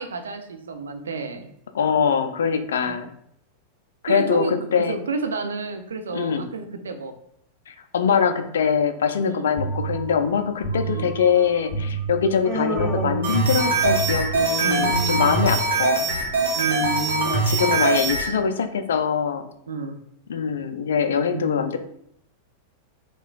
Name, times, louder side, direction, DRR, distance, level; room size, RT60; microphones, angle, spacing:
voice 1, 0.0-1.5 2.8-3.0 4.1-7.1 9.2-9.5 10.8-11.1 14.6-15.4 16.6-17.4 19.7-20.0 21.3-21.6, right 3 dB, 70° right, 7 dB, 0.4 m, -30 dB
voice 2, 1.7-3.1 4.0-5.0 6.1-6.4 7.7-16.1 17.3-19.5 20.3-21.8, left 6 dB, 65° left, 8 dB, 0.3 m, -23 dB
sound 1, 9.6-15.9, right 4 dB, 15° left, 1.4 m, -31 dB
Human voice, 12.4-14.2, equal, 15° right, 1.1 m, -30 dB
sound 2, 13.2-18.3, right 3 dB, 55° right, 0.9 m, -22 dB
4.7 x 2.3 x 2.3 m, 0.72 s
figure-of-eight pair, 90°, 0 cm